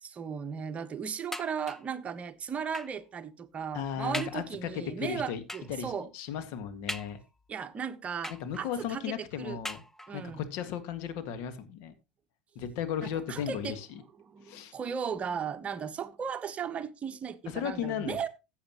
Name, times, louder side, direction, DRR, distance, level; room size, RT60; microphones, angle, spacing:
voice 1, 0.0-6.1 7.5-9.6 10.1-10.4 13.0-13.8 14.2-18.3, right 7 dB, 30° right, 1.1 m, -36 dB
sound 1, 1.3-2.0 2.7-3.1 3.6-3.7 4.1-4.5 5.5-5.8 6.9-7.5 8.2-8.8 9.6-10.3 11.1-11.2 11.6-11.7, left 1 dB, 10° left, 0.8 m, -41 dB
voice 2, 3.7-5.4 5.7-7.2 8.4-9.8 10.1-11.9 12.6-13.9 14.4-14.7 17.5-18.3, left 8 dB, 60° left, 1.8 m, -35 dB
14.5 x 8.4 x 3.0 m
hypercardioid pair, 80°, 4 cm